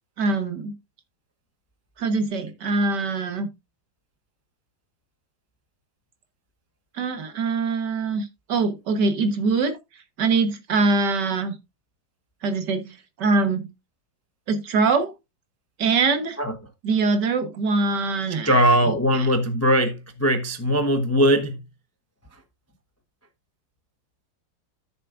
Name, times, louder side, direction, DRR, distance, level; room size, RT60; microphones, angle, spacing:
voice 1, 0.2-0.7 2.0-3.5 6.9-9.8 10.2-11.6 12.4-13.7 14.5-15.1 15.8-16.4 16.8-19.3, right 3 dB, 60° right, 1.8 m, -23 dB
voice 2, 18.4-21.6, equal, 15° left, 0.5 m, -20 dB
13.5 x 6.9 x 2.5 m
omnidirectional pair, 2.1 m